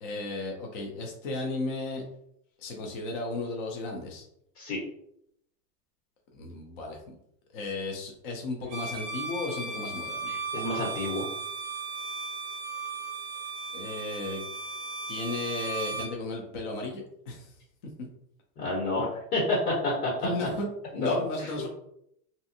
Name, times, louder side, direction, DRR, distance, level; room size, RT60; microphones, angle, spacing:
voice 1, 0.0-2.0 2.6-4.2 6.3-7.0 7.5-10.4 13.7-14.5 15.1-17.5 20.2-20.7 20.9-21.7, left 2 dB, 35° left, 1 dB, 0.4 m, -34 dB
Bowed string instrument, 8.7-16.2, right 4 dB, 40° right, 0.5 m, -36 dB
voice 2, 10.3-11.3 18.6-20.3 20.9-21.1 21.4-21.5, left 2 dB, 75° left, -5 dB, 1.4 m, -29 dB
2.6 x 2.4 x 2.6 m, 0.74 s
supercardioid pair, 160°, 46 cm